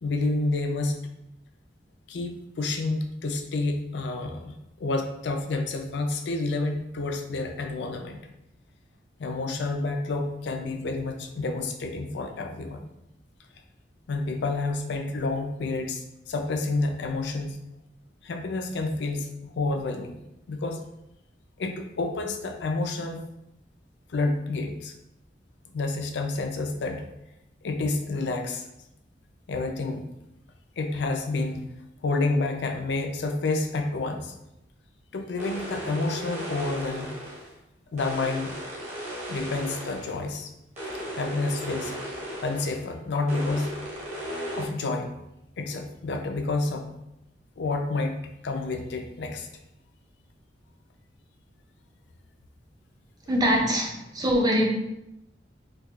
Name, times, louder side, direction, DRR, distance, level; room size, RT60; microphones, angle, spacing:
voice 1, 0.0-1.0 2.1-8.2 9.2-12.8 14.1-17.6 18.2-20.2 20.5-20.8 21.6-23.2 24.1-24.9 25.7-27.1 27.6-28.7 29.5-30.1 30.8-31.7 32.0-34.3 35.1-37.1 37.9-38.6 39.3-40.5 41.1-41.9 42.4-43.7 44.5-45.1 45.6-46.9 47.6-49.5, left 3 dB, 70° left, 5 dB, 0.4 m, -29 dB
sound 1, 35.4-37.5 38.0-40.2 40.8-42.8 43.3-44.7, equal, 40° right, 1.2 m, -36 dB
voice 2, 53.3-54.7, equal, 20° right, -1 dB, 0.5 m, -23 dB
4.5 x 2.3 x 2.3 m, 0.86 s
head